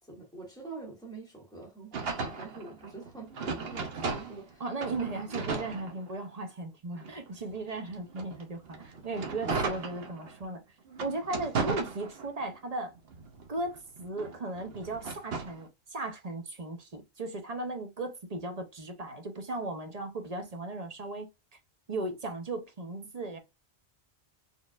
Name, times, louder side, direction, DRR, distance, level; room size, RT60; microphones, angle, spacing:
voice 1, 0.0-4.7 5.3-5.7 7.3-7.4, right 3 dB, 5° left, 2.3 m, -46 dB
sound 1, 1.9-4.5 4.8-6.4 7.0-10.5 10.9-12.5 13.0-15.6, right 4 dB, 65° right, 1.0 m, -36 dB
voice 2, 4.6-10.6 11.0-12.9 13.5-21.3 21.9-23.4, right 2 dB, 40° right, 0.9 m, -36 dB
4.1 x 3.4 x 2.4 m
omnidirectional pair, 1.1 m